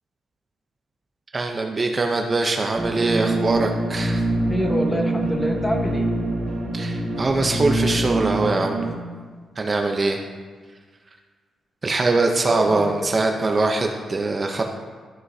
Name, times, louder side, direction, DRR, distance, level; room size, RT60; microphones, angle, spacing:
voice 1, 1.3-4.2 6.7-8.8 9.6-10.2 11.8-14.6, right 3 dB, 30° right, 3 dB, 0.7 m, -22 dB
sound 1, 2.7-8.9, right 2 dB, 90° right, 2.4 m, -25 dB
voice 2, 4.5-6.1 12.5-13.4, equal, 15° left, 2 dB, 1.2 m, -26 dB
13.5 x 6.2 x 2.7 m, 1.5 s
cardioid pair, 105°, 0 cm